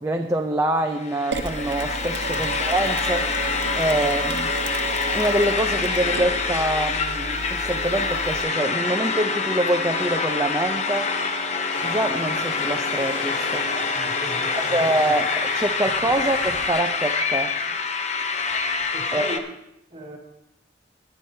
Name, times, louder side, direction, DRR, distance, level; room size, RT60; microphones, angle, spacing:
voice 1, 0.0-3.5 3.8-4.5 5.1-11.1 11.8-13.7 14.7-17.5 19.1-19.3, right 1 dB, 15° right, 4 dB, 0.5 m, -25 dB
sound 1, 0.9-19.4, left 4 dB, 40° left, 0.8 m, -26 dB
Mechanisms, 1.3-8.4, right 3 dB, 80° right, 0.9 m, -33 dB
sound 2, 11.7-16.7, left 1 dB, 75° left, 3.4 m, -37 dB
voice 2, 13.7-14.8 16.0-16.2 18.9-19.4 19.9-20.2, equal, 30° right, -3 dB, 2.2 m, -37 dB
21.5 x 9.4 x 2.8 m, 0.84 s
head